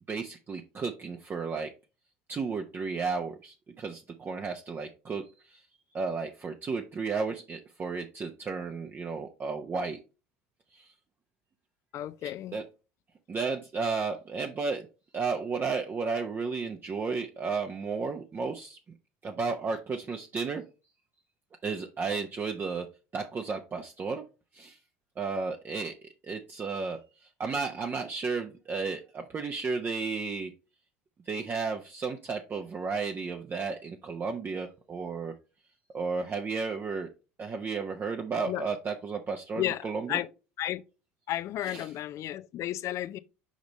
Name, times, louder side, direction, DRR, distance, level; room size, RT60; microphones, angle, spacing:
voice 1, 0.1-1.7 2.3-5.6 5.9-10.0 10.7-10.9 12.2-12.6 13.3-14.8 15.1-18.8 19.2-20.6 21.6-22.9 23.1-24.2 24.5-24.8 25.2-25.9 26.2-27.0 27.4-30.5 31.3-35.3 35.9-37.1 37.4-40.2 41.6-41.9, right 4 dB, 30° right, 0.8 m, -33 dB
voice 2, 11.9-12.6 38.5-38.6 39.6-40.3 40.6-40.8 41.3-43.2, left 13 dB, 45° left, 0.5 m, -33 dB
5.1 x 5.1 x 4.0 m
hypercardioid pair, 75°, 7 cm